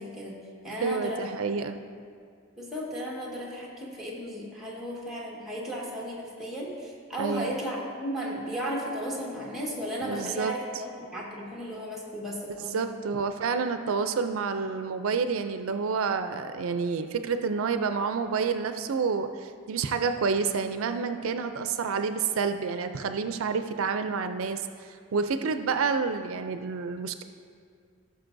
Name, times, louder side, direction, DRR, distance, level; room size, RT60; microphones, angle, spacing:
voice 1, 0.0-1.3 2.6-13.0, equal, ahead, -5 dB, 1.5 m, -35 dB
voice 2, 0.8-1.8 7.2-7.5 10.0-10.6 12.7-27.2, right 5 dB, 75° right, 8 dB, 0.4 m, -29 dB
16.0 x 6.6 x 2.6 m, 2.2 s
head